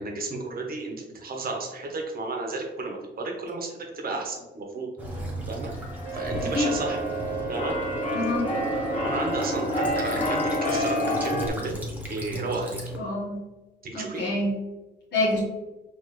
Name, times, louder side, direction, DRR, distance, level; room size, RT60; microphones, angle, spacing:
voice 1, 0.0-5.7 6.1-7.0 7.5-7.7 9.0-11.8 12.1-12.8 13.8-14.2, right 3 dB, 50° right, 1 dB, 1.2 m, -33 dB
Child speech kid speaking / Bird vocalization bird call bird song / Stream, 5.0-13.0, right 1 dB, 10° right, 1.1 m, -37 dB
Keyboard (musical), 5.6-11.5, left 1 dB, 40° left, 1.1 m, -28 dB
Wind instrument woodwind instrument, 6.0-11.1, right 9 dB, 85° right, 0.6 m, -36 dB
voice 2, 6.4-6.7 8.1-8.5 13.0-13.4 13.9-14.5 15.1-15.4, left 2 dB, 60° left, -6 dB, 1.3 m, -26 dB
4.8 x 2.8 x 3.2 m, 1.1 s
cardioid pair, 90°, 20 cm